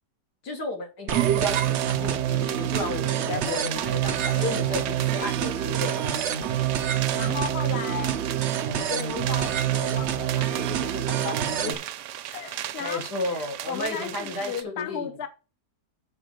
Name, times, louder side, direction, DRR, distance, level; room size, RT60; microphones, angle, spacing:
voice 1, 0.4-6.0 12.8-15.2, left 2 dB, 80° left, 2.4 m, -33 dB
sound 1, 1.1-11.7, right 10 dB, 60° right, 0.7 m, -26 dB
sound 2, 1.1-14.6, right 12 dB, 85° right, 1.2 m, -37 dB
voice 2, 4.1-4.7 6.4-6.7 7.1-8.2 8.7-11.9 12.3-15.3, left 7 dB, 50° left, 0.9 m, -36 dB
7.0 x 4.1 x 6.5 m
omnidirectional pair, 1.8 m